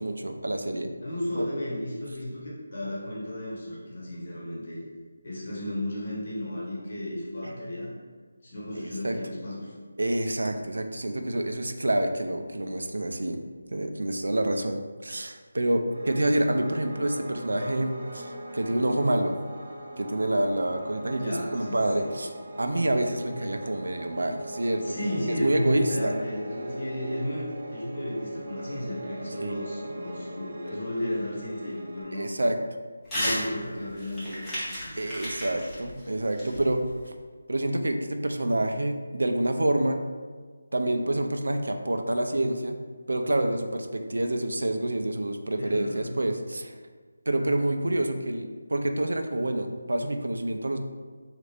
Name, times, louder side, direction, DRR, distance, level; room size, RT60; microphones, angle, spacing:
voice 1, 0.0-0.9 1.4-1.5 7.4-7.6 8.7-9.2 10.0-13.4 13.7-19.3 20.0-22.3 22.6-26.1 29.4-29.5 32.1-32.6 35.0-36.8 37.5-40.0 40.7-42.8 43.1-46.7 47.3-50.8, right 1 dB, 90° right, 6 dB, 0.4 m, -27 dB
voice 2, 1.0-4.8 5.2-7.9 8.4-9.7 21.2-22.1 24.8-32.3 33.1-34.5 34.8-35.1 45.6-46.2, left 1 dB, 45° left, -5 dB, 1.0 m, -33 dB
Piano, 15.9-32.0, right 1 dB, 30° right, 0.6 m, -40 dB
Crumpling crinkling / Tearing, 33.0-33.4 33.8-37.1, equal, 5° left, 0.6 m, -33 dB
4.0 x 2.4 x 3.3 m, 1.5 s
figure-of-eight pair, 175°, 0 cm